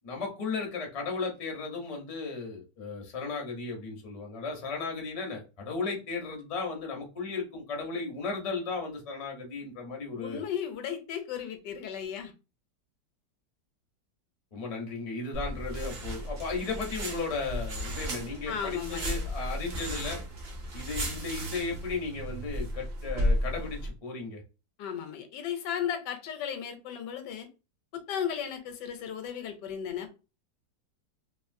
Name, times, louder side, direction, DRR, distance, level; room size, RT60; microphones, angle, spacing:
voice 1, 0.0-10.4 14.5-20.2 20.7-24.4, left 4 dB, 45° left, 0.4 m, -35 dB
voice 2, 10.1-12.3 18.5-19.2 24.8-27.5 27.9-30.1, left 8 dB, 80° left, 1.2 m, -35 dB
sound 1, 15.3-23.9, equal, 60° right, 0.6 m, -34 dB
2.9 x 2.5 x 2.5 m
omnidirectional pair, 1.9 m